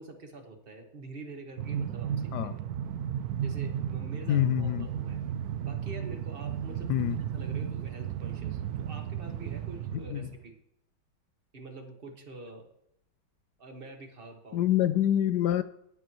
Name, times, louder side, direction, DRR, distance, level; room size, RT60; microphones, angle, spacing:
voice 1, 0.0-2.5 3.4-5.2 5.6-7.1 7.3-10.5 11.5-12.7 13.6-14.6, right 2 dB, 30° right, 1.6 m, -46 dB
Train, 1.6-10.4, right 9 dB, 80° right, 0.8 m, -34 dB
voice 2, 4.3-4.9 6.9-7.2 9.9-10.3 14.5-15.6, left 12 dB, 75° left, 1.0 m, -26 dB
19.5 x 7.9 x 3.1 m
omnidirectional pair, 2.1 m